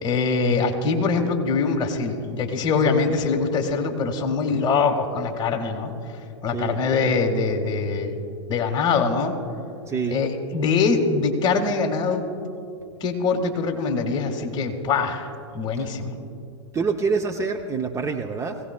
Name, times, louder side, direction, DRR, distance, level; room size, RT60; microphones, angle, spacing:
voice 1, 0.0-5.9 6.4-8.1 8.5-9.4 10.1-12.2 13.0-15.3 15.5-16.2, left 4 dB, 30° left, 4 dB, 1.7 m, -23 dB
voice 2, 9.9-10.2 16.7-18.6, right 5 dB, 20° right, 5 dB, 0.6 m, -26 dB
21.0 x 16.5 x 2.2 m, 2.6 s
hypercardioid pair, 110°, 16 cm